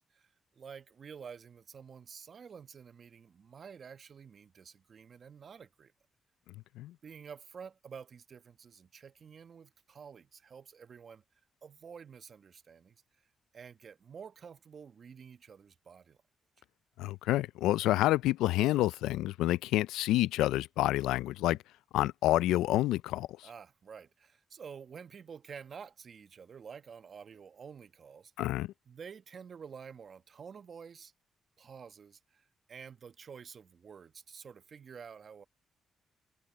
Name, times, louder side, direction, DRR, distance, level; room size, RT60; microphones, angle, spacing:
voice 1, 0.1-5.9 7.0-11.2 11.6-13.0 13.5-16.2 23.4-28.3 28.9-31.1 31.6-35.4, right 6 dB, 55° right, 1.1 m, -50 dB
voice 2, 17.0-21.6 21.9-23.5 28.4-28.7, left 15 dB, 90° left, 0.3 m, -28 dB
supercardioid pair, 55°, 0 cm